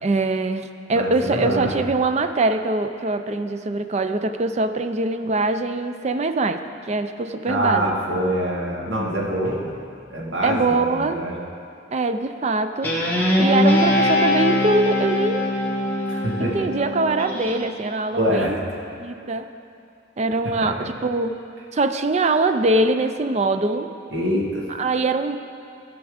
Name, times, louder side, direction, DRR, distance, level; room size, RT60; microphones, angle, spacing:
voice 1, 0.0-7.9 10.4-11.2 11.9-13.0 13.4-15.5 16.4-18.6 19.0-19.5 20.2-21.4 21.7-23.9 24.7-25.4, right 2 dB, 35° right, 8 dB, 0.4 m, -23 dB
voice 2, 0.9-1.7 7.5-9.7 10.1-11.3 16.1-16.7 18.2-18.5 20.6-20.9 24.1-24.7, right 1 dB, 70° right, -3 dB, 1.9 m, -25 dB
Guitar, 12.8-17.6, left 1 dB, 10° left, 1.6 m, -21 dB
14.5 x 6.1 x 5.0 m, 2.5 s
head